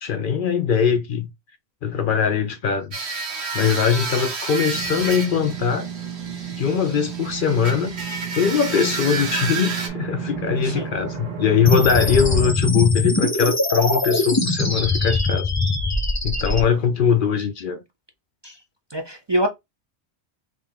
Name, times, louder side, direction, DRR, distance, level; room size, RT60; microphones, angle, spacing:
voice 1, 0.0-1.3 1.8-3.0 3.5-5.9 6.6-8.0 8.4-15.5 16.2-17.8, left 7 dB, 60° left, 0.6 m, -21 dB
sound 1, 2.9-9.9, right 4 dB, 80° right, 1.3 m, -30 dB
sound 2, 4.7-12.5, right 8 dB, 50° right, 1.2 m, -32 dB
sound 3, 11.7-16.6, left 2 dB, 20° left, 0.7 m, -22 dB
voice 2, 18.9-19.5, right 1 dB, 30° right, 0.5 m, -24 dB
3.8 x 2.8 x 3.5 m
omnidirectional pair, 1.1 m